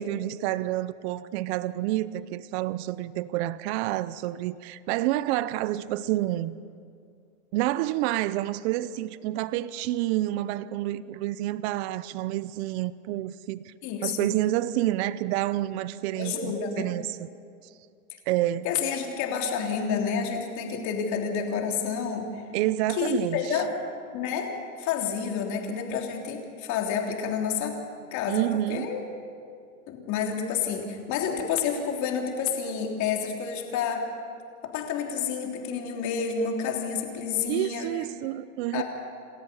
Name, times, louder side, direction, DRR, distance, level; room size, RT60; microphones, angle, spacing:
voice 1, 0.0-6.6 7.5-13.7 14.0-17.1 18.3-18.7 22.5-23.6 28.3-28.9 37.5-38.8, right 15 dB, 55° right, 0.7 m, -28 dB
voice 2, 13.8-14.4 16.2-16.9 18.6-22.4 22.9-23.7 24.1-24.5 24.8-27.8 28.1-28.4 28.7-29.0 29.9-34.1 34.7-37.9 38.7-38.8, left 6 dB, 45° left, 3.4 m, -29 dB
28.5 x 13.5 x 7.0 m
supercardioid pair, 130°, 41 cm